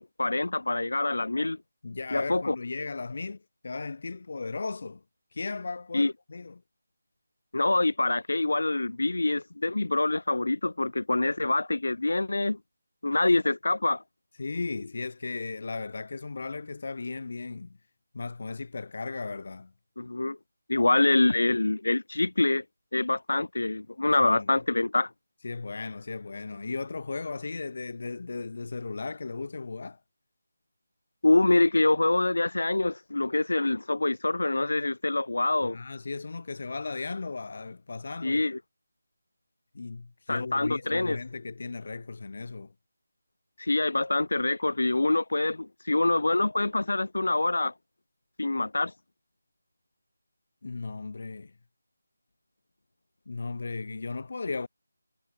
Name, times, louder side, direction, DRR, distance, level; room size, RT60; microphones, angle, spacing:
voice 1, 0.0-1.6 2.1-2.6 5.9-6.1 7.5-12.6 13.0-14.0 20.0-20.4 20.7-22.6 22.9-25.1 31.2-35.8 38.2-38.6 40.3-41.2 43.6-47.7 48.4-48.9, left 2 dB, 80° left, 0.4 m, -25 dB
voice 2, 1.8-5.0 5.3-6.5 14.4-17.8 18.1-19.7 24.2-24.5 25.4-30.0 35.6-38.4 39.7-42.7 50.6-51.5 53.3-54.7, left 3 dB, 50° left, 2.6 m, -36 dB
figure-of-eight pair, 170°, 0 cm